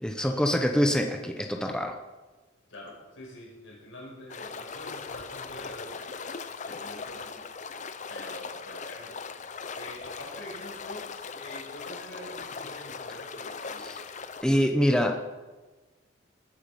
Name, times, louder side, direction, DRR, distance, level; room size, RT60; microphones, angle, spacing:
voice 1, 0.0-2.0 13.8-14.0 14.4-15.3, equal, 5° left, 3 dB, 0.9 m, -25 dB
voice 2, 2.7-6.1 6.7-7.5 8.1-9.2 9.7-13.9, left 1 dB, 80° left, -2 dB, 5.8 m, -45 dB
sound 1, 4.3-14.4, left 5 dB, 40° left, 0.6 m, -39 dB
19.5 x 9.5 x 5.2 m, 1.2 s
head